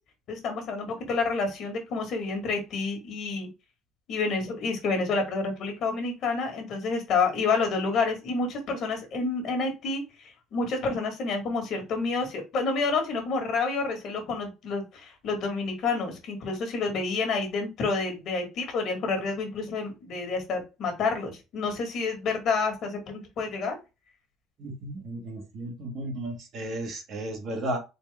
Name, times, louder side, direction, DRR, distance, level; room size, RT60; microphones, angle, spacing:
voice 1, 0.3-3.5 4.1-10.0 10.5-23.7, left 4 dB, 45° left, 4 dB, 1.6 m, -29 dB
voice 2, 24.6-27.8, right 1 dB, 40° right, 3 dB, 1.3 m, -34 dB
4.1 x 2.9 x 3.4 m, 0.26 s
cardioid pair, 165°, 0 cm